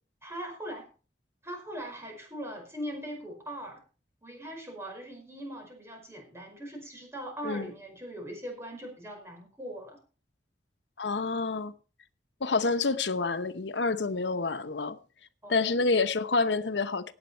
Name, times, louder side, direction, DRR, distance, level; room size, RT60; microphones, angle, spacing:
voice 1, 0.2-0.9 1.4-3.8 4.2-10.0 15.4-15.8, equal, 15° right, 5.2 m, -40 dB
voice 2, 11.0-11.7 12.4-15.0 15.5-17.1, left 3 dB, 90° left, 0.9 m, -28 dB
17.5 x 8.1 x 4.5 m
head